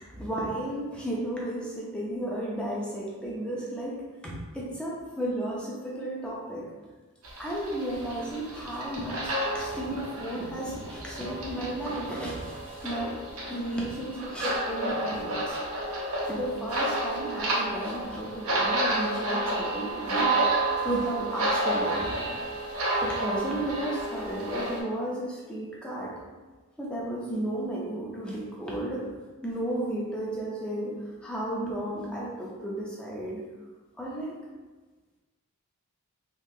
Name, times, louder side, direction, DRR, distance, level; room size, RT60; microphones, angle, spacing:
voice 1, 0.1-6.7 7.4-13.2 13.5-15.6 16.3-20.4 20.8-22.4 23.0-26.1 26.8-29.1 29.4-30.9 31.2-33.4 34.0-34.4, right 1 dB, 5° left, -5 dB, 0.6 m, -33 dB
sound 1, 7.2-24.8, right 2 dB, 70° right, 0.8 m, -30 dB
3.6 x 2.8 x 2.7 m, 1.3 s
head